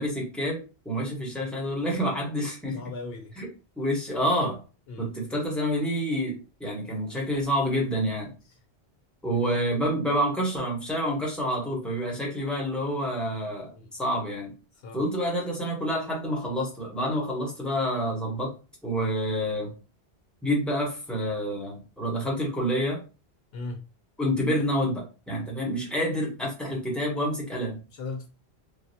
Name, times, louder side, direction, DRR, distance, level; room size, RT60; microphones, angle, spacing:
voice 1, 0.0-2.8 3.4-3.5 3.8-4.6 5.0-8.3 9.2-14.5 14.9-18.5 18.8-19.7 20.4-23.0 24.2-27.8, equal, ahead, 0.9 m, -28 dB
voice 2, 2.7-3.3 4.9-5.1 13.8-13.9 14.8-15.0 23.5-23.8 28.0-28.3, left 3 dB, 70° left, 0.8 m, -37 dB
3.3 x 2.3 x 2.7 m
omnidirectional pair, 1.1 m